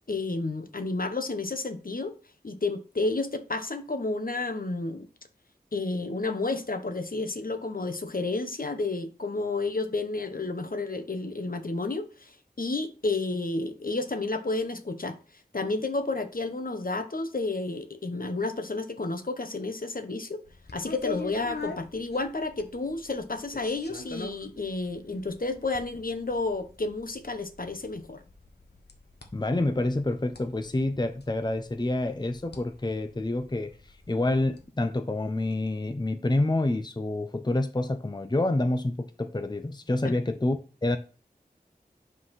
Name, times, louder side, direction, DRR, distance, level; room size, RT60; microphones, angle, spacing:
voice 1, 0.1-2.1 2.4-5.1 5.7-15.2 15.5-20.4 20.7-28.2 40.0-40.1, left 3 dB, 60° left, 1.0 m, -31 dB
sound 1, 20.4-34.6, left 4 dB, 85° left, 1.2 m, -44 dB
voice 2, 29.3-33.8 34.1-41.0, left 2 dB, 25° left, 0.7 m, -28 dB
7.9 x 4.0 x 5.7 m
wide cardioid pair, 45°, 17 cm